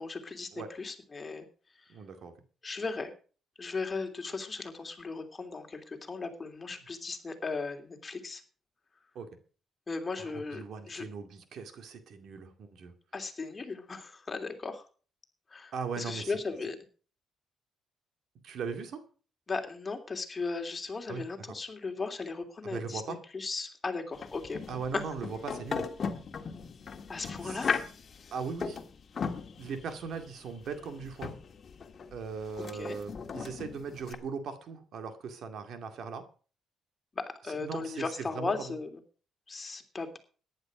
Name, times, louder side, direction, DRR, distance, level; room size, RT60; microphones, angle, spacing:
voice 1, 0.0-1.5 1.7-1.9 2.6-3.1 3.6-8.4 9.9-11.1 13.1-14.9 15.5-16.8 19.5-23.0 23.3-25.0 27.1-27.8 32.7-33.0 37.1-38.9 39.5-40.2, left 4 dB, 30° left, 4 dB, 3.0 m, -37 dB
voice 2, 1.9-2.3 6.7-6.8 9.1-9.3 10.2-12.9 15.7-16.4 18.4-19.0 21.1-21.2 22.6-23.2 24.7-25.9 27.4-27.7 28.3-28.8 29.6-31.4 32.1-36.3 37.6-38.5, right 5 dB, 70° right, 7 dB, 2.3 m, -39 dB
sound 1, 24.1-34.1, left 5 dB, 45° left, 1.8 m, -38 dB
14.5 x 10.5 x 5.0 m, 0.39 s
cardioid pair, 90°, 0 cm